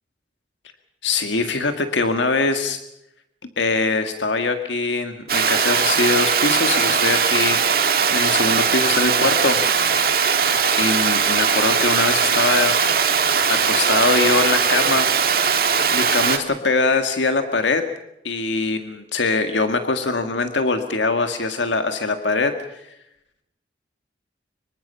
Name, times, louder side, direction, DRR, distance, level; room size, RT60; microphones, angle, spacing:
voice 1, 1.0-2.8 3.6-9.6 10.8-12.8 13.5-15.1 15.9-17.9 18.2-22.9, left 3 dB, 90° left, 7 dB, 1.8 m, -22 dB
Water, 5.3-16.4, right 6 dB, 55° right, 2.0 m, -19 dB
25.5 x 23.5 x 5.7 m, 0.82 s
head